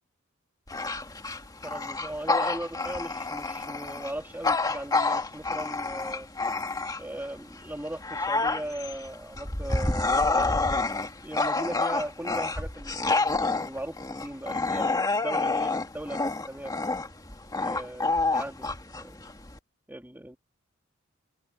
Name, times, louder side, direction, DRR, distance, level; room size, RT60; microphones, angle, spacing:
Bark / Growling, 0.7-7.2 7.7-19.6, left 3 dB, 20° left, 2.0 m, -28 dB
voice 1, 1.6-6.3 7.0-16.7 17.6-18.7 19.0-19.3 19.9-20.4, right 1 dB, 10° right, 3.0 m, -38 dB
head